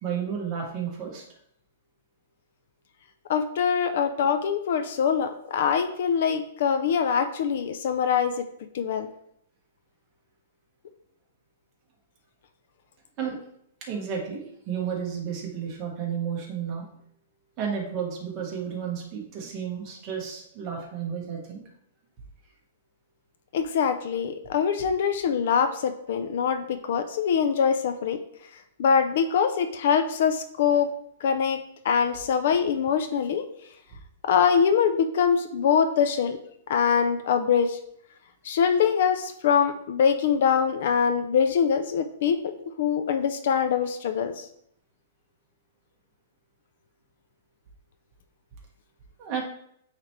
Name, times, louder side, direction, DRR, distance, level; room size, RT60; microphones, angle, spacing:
voice 1, 0.0-1.2 13.2-13.4 13.8-16.8 17.6-21.6 49.2-49.4, right 7 dB, 25° right, -1 dB, 1.2 m, -32 dB
voice 2, 3.3-8.5 8.7-9.1 23.5-28.2 28.8-30.9 31.2-31.6 31.8-33.4 34.3-36.4 36.7-37.8 38.5-42.4 42.8-44.3, left 7 dB, 50° left, 8 dB, 0.5 m, -23 dB
9.4 x 3.2 x 3.2 m, 0.71 s
hypercardioid pair, 170°, 0 cm